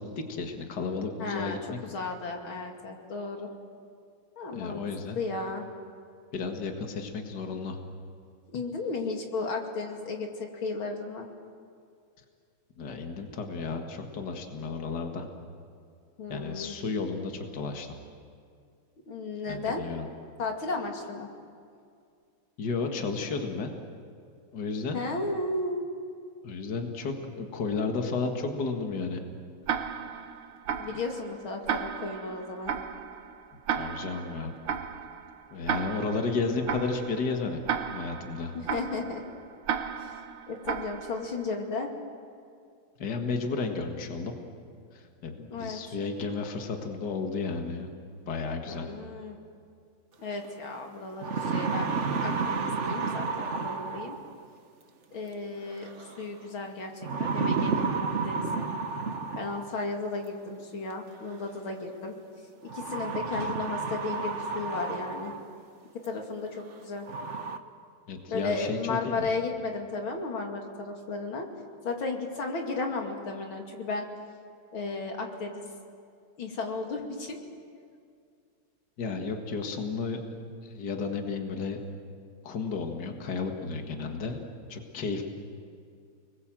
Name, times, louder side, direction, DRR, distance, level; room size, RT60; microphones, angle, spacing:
voice 1, 0.2-1.8 4.5-5.2 6.3-7.8 12.8-15.3 16.3-17.9 19.5-20.1 22.6-23.7 24.5-25.0 26.4-29.2 30.9-31.0 33.7-34.5 35.5-37.6 37.9-38.5 43.0-44.3 44.9-47.9 48.2-48.9 63.4-63.6 68.1-68.8 69.0-69.3 79.0-80.2 80.6-81.8 82.4-84.4 84.7-85.2, left 4 dB, 50° left, 3 dB, 2.3 m, -33 dB
voice 2, 1.2-3.5 4.4-4.8 5.1-5.6 8.5-11.3 16.2-16.8 19.0-19.8 20.4-21.3 24.9-25.9 30.8-32.7 38.5-39.2 40.0-40.1 40.5-41.9 45.5-45.8 48.7-49.4 50.2-54.2 55.1-58.7 59.4-62.1 62.7-65.3 66.0-67.1 68.3-71.5 71.8-74.1 74.7-75.7 76.4-77.4, left 3 dB, 70° left, 2 dB, 3.3 m, -34 dB
Tick-tock, 29.7-41.5, right 8 dB, 80° right, 2.0 m, -35 dB
sound 1, 50.4-50.5 51.0-54.4 55.8-56.2 57.0-59.8 61.1-61.2 62.7-65.6 66.0-66.1 66.7-66.8 67.0-67.6, right 4 dB, 40° right, 1.2 m, -31 dB
30.0 x 21.0 x 7.6 m, 2.3 s
omnidirectional pair, 2.3 m